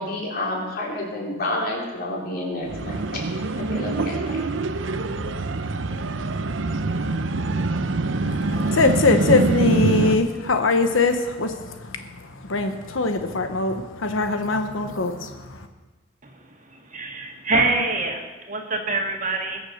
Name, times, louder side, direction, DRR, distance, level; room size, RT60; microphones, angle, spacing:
voice 1, 0.0-3.2 3.5-4.4, left 1 dB, 50° left, 3.9 m, -29 dB
sound 1, 2.7-10.2, right 2 dB, 70° right, 0.8 m, -25 dB
voice 2, 8.3-15.7, left 3 dB, 80° left, 1.0 m, -22 dB
voice 3, 16.2-19.6, right 3 dB, 40° right, 1.9 m, -26 dB
21.0 x 7.2 x 6.5 m
head